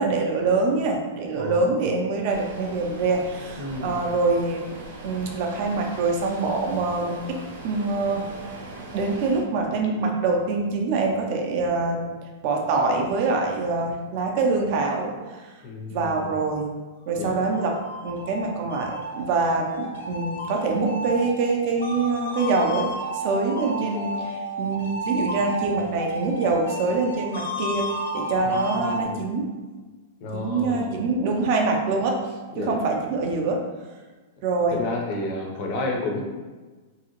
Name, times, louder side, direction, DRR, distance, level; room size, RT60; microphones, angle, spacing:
voice 1, 0.0-8.3 8.9-15.1 15.9-16.7 17.1-17.8 18.0-22.9 23.1-24.3 24.6-27.9 28.1-29.5 30.3-32.2 32.6-33.6 34.4-34.8, right 3 dB, 35° right, 2 dB, 0.4 m, -25 dB
voice 2, 1.4-1.8 3.6-4.0 15.6-16.3 17.2-17.5 28.4-29.2 30.2-31.0 32.5-32.8 34.7-36.2, left 2 dB, 35° left, 1 dB, 0.5 m, -31 dB
sound 1, 2.3-9.4, right 2 dB, 80° right, 0.7 m, -40 dB
sound 2, 17.5-29.0, right 1 dB, 80° left, 0.7 m, -32 dB
2.8 x 2.7 x 2.8 m, 1.3 s
supercardioid pair, 175°, 0 cm